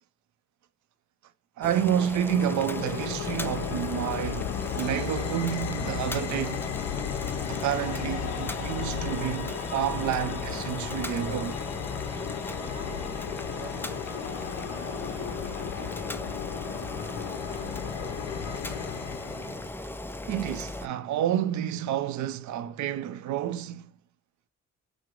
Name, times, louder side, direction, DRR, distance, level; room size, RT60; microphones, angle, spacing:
Boiling, 1.6-20.9, left 1 dB, 10° left, 0.4 m, -38 dB
voice 1, 1.6-6.7 7.5-11.6 20.3-23.9, right 10 dB, 70° right, 0.5 m, -29 dB
sound 1, 2.3-19.7, left 9 dB, 55° left, 0.6 m, -34 dB
voice 2, 12.6-14.1 14.6-19.0, right 1 dB, 15° right, 1.2 m, -51 dB
5.8 x 2.0 x 3.7 m
cardioid pair, 90°, 30 cm